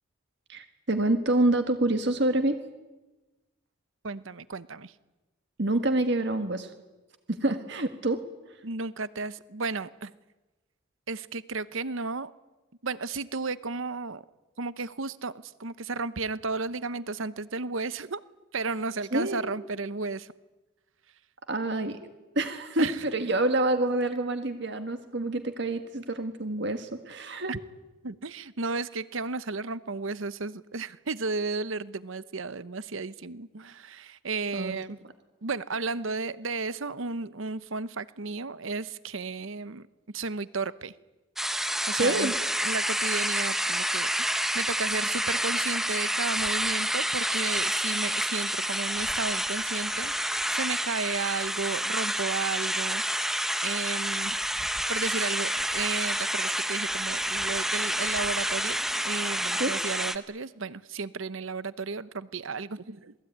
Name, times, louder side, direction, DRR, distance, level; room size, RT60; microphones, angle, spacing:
voice 1, 0.5-2.6 5.6-6.7 7.3-8.2 19.1-19.4 21.5-22.0 22.3-27.5 34.5-34.8 41.9-42.3 59.6-59.7, right 2 dB, 55° right, 7 dB, 1.7 m, -27 dB
voice 2, 4.0-4.9 8.6-10.1 11.1-12.3 12.8-14.2 14.6-18.2 18.5-20.3 22.8-23.0 27.5-27.6 28.0-34.9 35.4-40.9 41.9-42.3 42.6-54.4 54.9-58.8 59.0-63.1, right 4 dB, 70° right, 16 dB, 0.9 m, -34 dB
sound 1, 41.4-60.2, equal, ahead, 0.9 m, -29 dB
27.0 x 19.5 x 9.4 m, 1.1 s
head